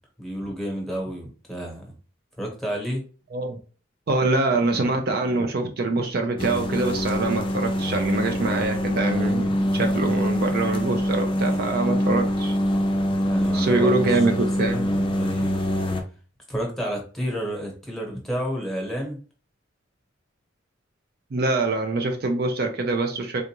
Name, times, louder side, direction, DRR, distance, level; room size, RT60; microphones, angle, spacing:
voice 1, 0.2-1.8 2.4-3.0 13.2-15.7 16.5-19.2, equal, ahead, 0 dB, 1.0 m, -31 dB
voice 2, 4.1-12.6 13.5-14.8 21.3-23.4, right 2 dB, 55° right, 4 dB, 0.5 m, -24 dB
sound 1, 6.4-16.0, equal, 25° left, 0.5 m, -24 dB
3.6 x 2.4 x 2.8 m, 0.37 s
head